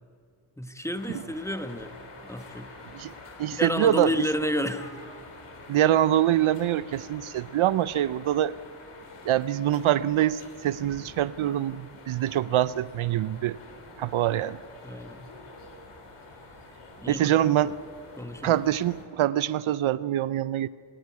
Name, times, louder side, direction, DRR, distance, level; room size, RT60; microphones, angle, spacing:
voice 1, 0.6-1.9 2.3-2.7 3.5-4.9 14.8-15.3 17.0-17.3 18.1-18.6, left 1 dB, 5° left, 9 dB, 1.2 m, -31 dB
sound 1, 0.9-19.0, left 2 dB, 85° left, 3.7 m, -47 dB
voice 2, 3.4-4.1 5.7-8.6 9.3-13.6 14.0-14.6 17.1-17.7 18.4-20.7, right 12 dB, 75° right, 17 dB, 0.6 m, -24 dB
25.0 x 13.5 x 9.6 m, 2.3 s
cardioid pair, 75°, 49 cm